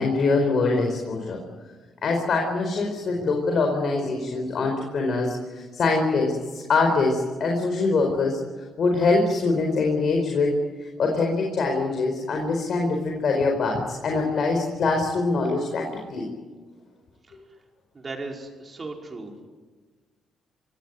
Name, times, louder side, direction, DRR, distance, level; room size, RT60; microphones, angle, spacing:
voice 1, 0.0-1.4 2.0-8.4 8.8-16.3, left 3 dB, 55° left, 2 dB, 4.7 m, -24 dB
voice 2, 17.9-19.5, right 3 dB, 30° right, 1 dB, 5.3 m, -37 dB
26.0 x 16.5 x 9.5 m, 1.4 s
cardioid pair, 90°, 0 cm